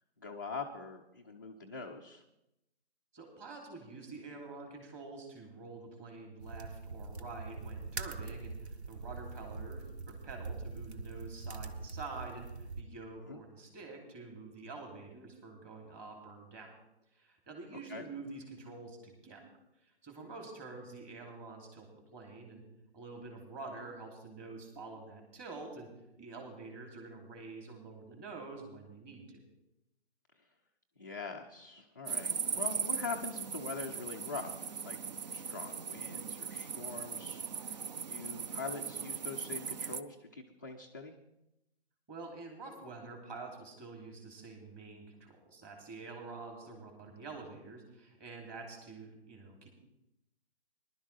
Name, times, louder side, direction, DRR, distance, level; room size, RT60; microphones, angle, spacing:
voice 1, 0.2-2.2 13.2-13.4 17.9-18.0 31.0-35.0 35.3-37.8 38.1-41.1, left 4 dB, 20° left, -1 dB, 0.3 m, -43 dB
voice 2, 3.1-16.7 17.1-19.4 19.8-22.6 22.9-25.9 26.2-29.4 42.1-49.7, right 3 dB, 20° right, 1 dB, 2.7 m, -47 dB
sound 1, 6.4-12.8, right 3 dB, 85° right, 1.1 m, -43 dB
sound 2, 32.1-40.0, right 7 dB, 45° right, 0.5 m, -39 dB
19.0 x 11.5 x 3.3 m, 0.87 s
hypercardioid pair, 150°, 32 cm